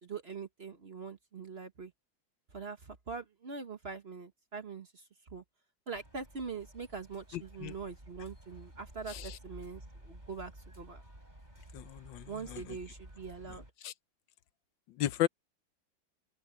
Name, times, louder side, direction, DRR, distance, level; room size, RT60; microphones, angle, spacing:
voice 1, 0.0-1.9 2.5-5.0 5.3-5.4 5.9-11.0 12.3-13.6, right 5 dB, 35° right, 1.3 m, -43 dB
sound 1, 5.9-13.7, right 1 dB, 20° right, 6.7 m, -53 dB
voice 2, 7.3-7.7 9.1-9.4 11.7-12.8 13.8-13.9 15.0-15.3, left 13 dB, 75° left, 1.4 m, -35 dB
open air
omnidirectional pair, 2.1 m